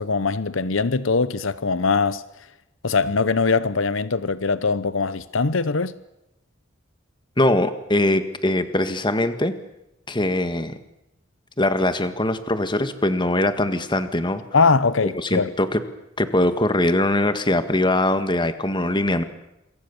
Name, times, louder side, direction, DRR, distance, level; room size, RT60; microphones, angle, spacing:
voice 1, 0.0-2.2 2.8-5.9 14.5-15.5, left 4 dB, 80° left, 0.9 m, -21 dB
voice 2, 7.4-9.6 10.1-10.8 11.6-14.4 15.2-15.8 16.2-19.2, left 1 dB, 25° left, 1.8 m, -22 dB
27.5 x 23.5 x 7.1 m
head